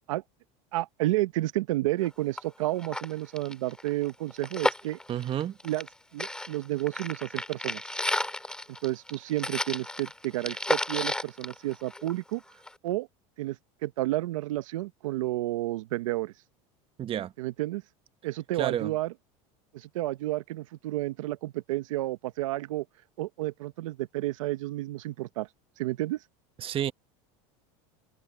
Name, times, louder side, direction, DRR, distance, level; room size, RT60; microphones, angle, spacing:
voice 1, 0.7-5.0 5.6-5.9 6.1-7.8 8.8-12.4 12.8-13.1 13.4-16.3 17.4-17.8 18.2-19.1 19.7-22.8 23.2-25.5 25.8-26.2, right 17 dB, 90° right, 0.9 m, -31 dB
sound 1, 2.0-2.1 2.4-2.5 2.8-5.9 6.2-12.3 12.7-12.8, left 1 dB, 5° left, 2.6 m, -32 dB
voice 2, 5.1-5.6 17.0-17.3 18.6-18.9 26.6-26.9, right 11 dB, 35° right, 1.2 m, -30 dB
supercardioid pair, 120°, 16 cm